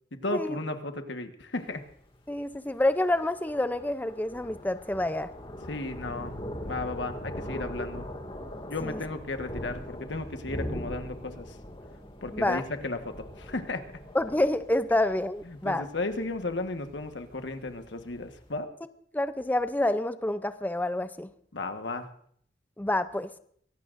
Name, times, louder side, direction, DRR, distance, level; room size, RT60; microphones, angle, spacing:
voice 1, 0.1-1.8 5.7-6.4 6.6-8.1 8.7-11.6 12.2-13.8 15.5-18.7 21.5-22.1, left 2 dB, 85° left, 7 dB, 1.4 m, -34 dB
Thunder, 1.6-18.5, equal, 30° left, 2.2 m, -41 dB
voice 2, 2.3-5.3 8.8-9.0 12.3-12.6 14.1-15.8 19.1-21.3 22.8-23.3, left 1 dB, 10° left, 11 dB, 0.5 m, -28 dB
23.5 x 17.5 x 2.6 m, 0.63 s
head